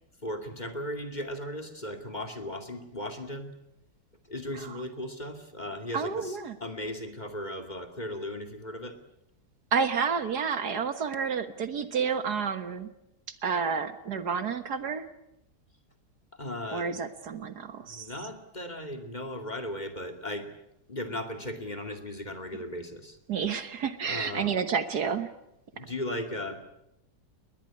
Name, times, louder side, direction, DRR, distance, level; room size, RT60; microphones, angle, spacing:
voice 1, 0.2-3.5 4.3-9.0 16.4-16.9 17.9-20.5 20.9-23.2 24.1-24.6 25.7-26.6, left 1 dB, 25° left, 6 dB, 2.5 m, -37 dB
voice 2, 5.9-6.6 9.7-12.9 13.3-15.1 16.7-18.1 23.3-25.3, right 6 dB, 65° right, 10 dB, 1.9 m, -30 dB
21.0 x 20.5 x 9.7 m, 0.83 s
omnidirectional pair, 1.8 m